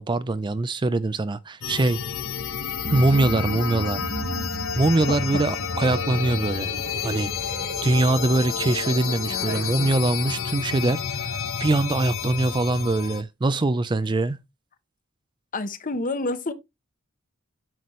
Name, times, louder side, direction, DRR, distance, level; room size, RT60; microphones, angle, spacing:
voice 1, 0.0-2.0 2.9-4.0 4.8-6.7 7.0-7.3 7.8-14.4, right 2 dB, 25° right, 0.4 m, -23 dB
sound 1, 1.6-13.2, left 6 dB, 90° left, 1.0 m, -30 dB
sound 2, 2.8-9.7, right 3 dB, 50° right, 0.7 m, -36 dB
voice 2, 5.1-5.4 9.3-10.3 15.5-16.5, left 2 dB, 40° left, 1.0 m, -30 dB
9.3 x 5.9 x 3.1 m
head